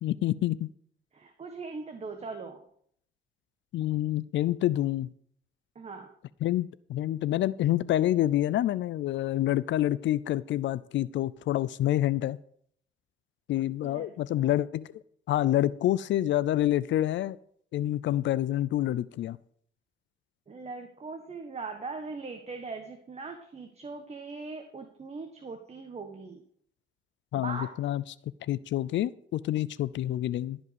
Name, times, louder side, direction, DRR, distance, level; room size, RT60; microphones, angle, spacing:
voice 1, 0.0-0.7 3.7-5.1 6.4-12.4 13.5-14.9 15.3-17.4 17.7-19.4 27.3-28.0 28.5-30.6, left 13 dB, 70° left, 18 dB, 0.5 m, -27 dB
voice 2, 1.1-2.6 5.7-6.1 13.8-14.5 20.5-26.4 27.3-27.7, right 4 dB, 30° right, 5 dB, 1.4 m, -40 dB
14.0 x 5.2 x 8.1 m, 0.64 s
cardioid pair, 90°, 20 cm